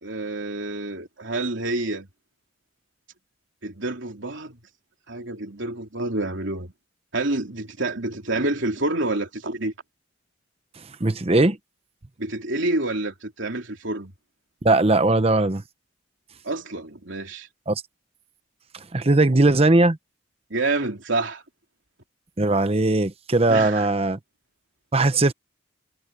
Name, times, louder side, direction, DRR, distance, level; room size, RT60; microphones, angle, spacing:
voice 1, 0.0-2.1 3.6-4.6 5.1-6.7 7.1-9.7 12.2-14.1 16.4-17.5 20.5-21.4 23.5-23.9, right 2 dB, 65° right, 3.3 m, -28 dB
voice 2, 11.0-11.6 14.6-15.6 17.7-17.8 18.7-20.0 22.4-24.2 24.9-25.3, right 2 dB, 30° right, 0.8 m, -19 dB
head